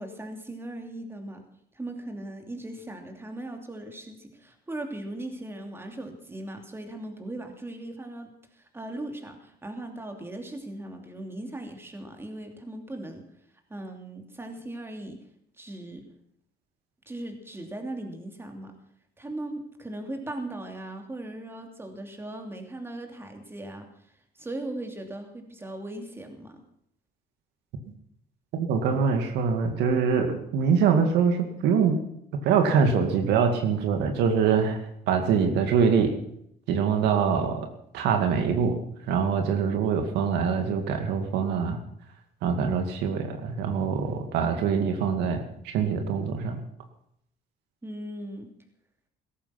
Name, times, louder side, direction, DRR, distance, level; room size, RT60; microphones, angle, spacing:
voice 1, 0.0-1.4 1.7-13.2 13.7-15.2 15.6-16.0 17.1-18.7 19.2-23.9 24.4-26.6 47.8-48.5, right 1 dB, 15° right, 5 dB, 2.9 m, -38 dB
voice 2, 28.5-32.0 32.4-36.1 36.7-37.7 37.9-41.8 42.4-46.6, right 6 dB, 85° right, 5 dB, 2.3 m, -24 dB
17.0 x 14.0 x 6.0 m, 0.71 s
cardioid pair, 110°, 17 cm